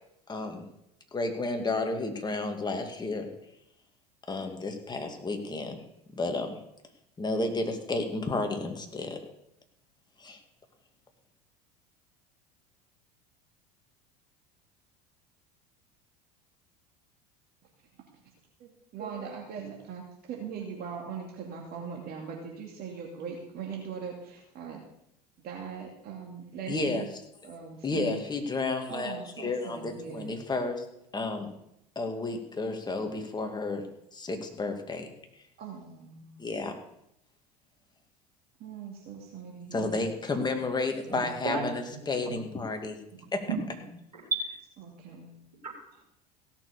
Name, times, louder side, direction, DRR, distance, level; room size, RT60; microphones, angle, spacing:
voice 1, 0.3-0.6 1.1-3.3 4.3-5.8 6.2-6.6 7.2-9.3 10.2-10.4 26.7-27.0 27.8-30.8 31.1-31.5 32.0-33.9 34.1-35.1 36.4-36.7 39.7-43.0 43.3-43.4, left 3 dB, 20° left, 4 dB, 2.3 m, -31 dB
voice 2, 18.6-24.8 25.4-27.1 27.4-28.2 28.9-30.4 35.6-36.4 38.6-40.0 44.8-45.3, right 6 dB, 50° right, 0 dB, 2.5 m, -40 dB
voice 3, 43.1-43.9 44.1-44.4 45.6-46.0, right 4 dB, 90° right, 1 dB, 3.3 m, -33 dB
16.5 x 7.1 x 6.8 m, 0.79 s
hypercardioid pair, 75°, 21 cm